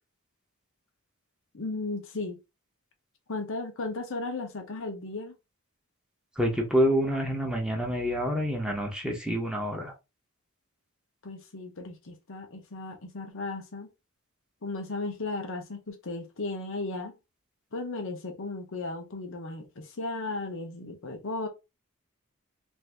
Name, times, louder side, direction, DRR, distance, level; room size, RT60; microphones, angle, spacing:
voice 1, 1.5-2.4 3.3-5.3 11.2-13.9 14.6-17.1 17.7-21.5, left 3 dB, 65° left, 0.8 m, -35 dB
voice 2, 6.4-9.9, equal, 5° right, 0.8 m, -27 dB
2.7 x 2.6 x 3.4 m
head